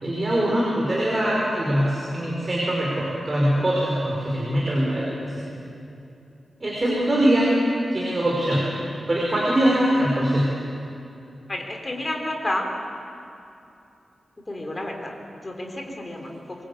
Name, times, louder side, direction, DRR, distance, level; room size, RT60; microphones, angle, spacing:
voice 1, 0.0-5.5 6.6-7.5 7.9-8.7 9.1-10.5, right 1 dB, 25° right, -4 dB, 5.1 m, -22 dB
voice 2, 11.5-12.7 14.5-15.1 15.4-16.3, left 1 dB, 20° left, 2 dB, 3.7 m, -30 dB
25.5 x 22.5 x 8.6 m, 2.7 s
wide cardioid pair, 160°, 0 cm